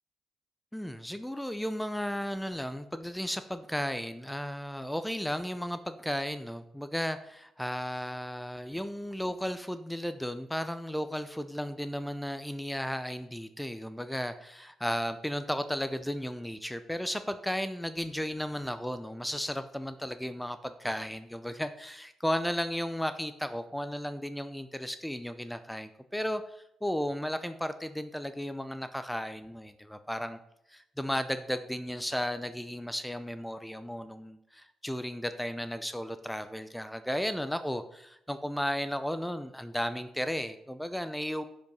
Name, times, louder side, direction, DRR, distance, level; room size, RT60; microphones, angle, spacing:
voice 1, 0.7-30.4 30.7-41.4, equal, 5° left, 11 dB, 0.5 m, -34 dB
10.5 x 5.3 x 5.4 m, 0.80 s
cardioid pair, 90°, 0 cm